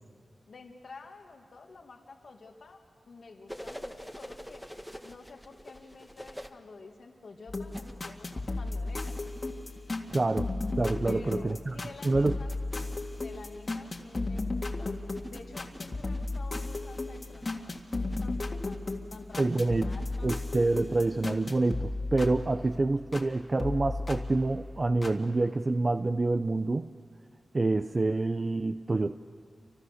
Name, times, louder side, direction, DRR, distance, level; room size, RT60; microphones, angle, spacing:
voice 1, 0.5-2.8 3.1-4.6 5.0-9.2 11.0-20.5, left 3 dB, 75° left, 3 dB, 1.9 m, -50 dB
sound 1, 3.5-6.5 7.6-21.0 22.7-22.8, equal, ahead, 1.5 m, -47 dB
sound 2, 7.5-23.3 23.6-25.2, left 2 dB, 45° left, 2.0 m, -35 dB
voice 2, 10.1-10.5 10.8-11.7 12.0-12.3 19.4-19.9 20.2-26.9 27.5-29.1, right 2 dB, 40° right, 8 dB, 0.6 m, -27 dB
28.5 x 25.0 x 6.6 m, 2.2 s
cardioid pair, 55°, 0 cm